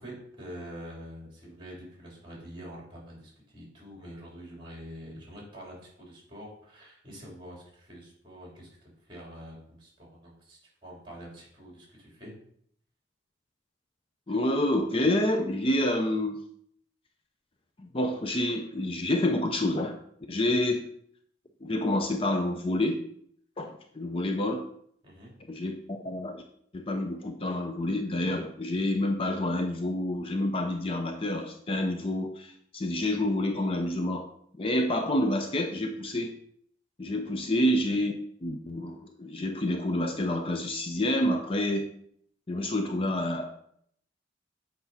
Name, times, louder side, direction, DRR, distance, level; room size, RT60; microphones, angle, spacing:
voice 1, 0.0-12.3 25.0-25.3 37.3-37.5, equal, 25° right, -3 dB, 3.3 m, -46 dB
voice 2, 14.3-16.4 17.8-20.0 20.3-20.8 21.6-23.0 23.6-24.7 25.5-26.4 26.7-34.3 34.6-36.3 37.0-38.1 38.4-41.9 42.5-43.5, left 1 dB, 30° left, 5 dB, 0.5 m, -28 dB
8.0 x 5.2 x 4.2 m, 0.66 s
head